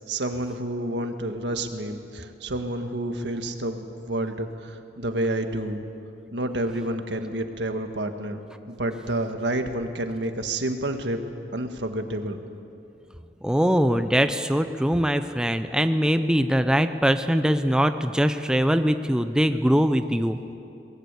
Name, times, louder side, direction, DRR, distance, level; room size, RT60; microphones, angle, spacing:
voice 1, 0.1-5.8 6.3-8.4 8.7-11.2 11.5-12.4, right 1 dB, 75° right, 6 dB, 1.7 m, -29 dB
voice 2, 13.4-20.4, equal, 5° right, 9 dB, 0.6 m, -22 dB
23.5 x 19.5 x 8.2 m, 2.7 s
head